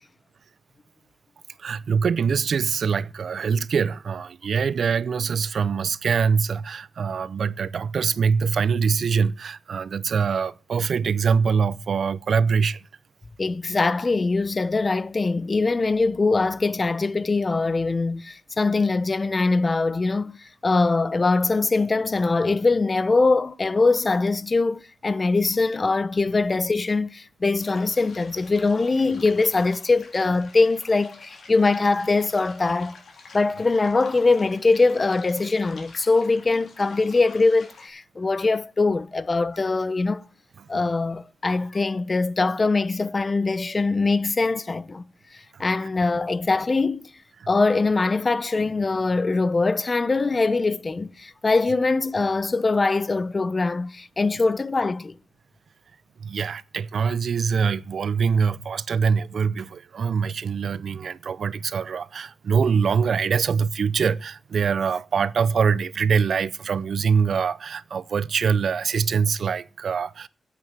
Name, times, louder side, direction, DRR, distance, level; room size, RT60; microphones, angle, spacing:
voice 1, 1.6-12.8 47.4-47.5 56.2-70.3, right 6 dB, 70° right, 0.5 m, -24 dB
voice 2, 13.4-33.0 33.3-40.2 40.7-45.0 45.6-47.1 47.5-55.1, left 3 dB, 35° left, 0.7 m, -22 dB
sound 1, 27.6-37.9, left 4 dB, 70° left, 3.9 m, -48 dB
9.3 x 8.3 x 8.9 m
cardioid pair, 75°, 0 cm